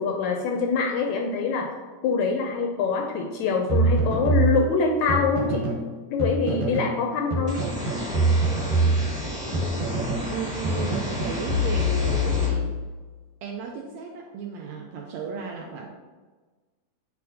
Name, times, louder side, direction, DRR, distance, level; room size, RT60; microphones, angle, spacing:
voice 1, 0.0-1.7 2.0-5.7 6.1-7.6, left 5 dB, 80° left, 2 dB, 1.7 m, -24 dB
sound 1, 3.7-5.9 6.2-7.0 7.3-10.3 10.6-13.1, right 1 dB, 65° right, 2.2 m, -25 dB
sound 2, 7.5-12.5, equal, 5° right, 0.6 m, -33 dB
voice 2, 10.3-12.7 13.4-15.9, right 6 dB, 80° right, 0 dB, 1.6 m, -34 dB
8.2 x 4.3 x 2.7 m, 1.3 s
omnidirectional pair, 3.7 m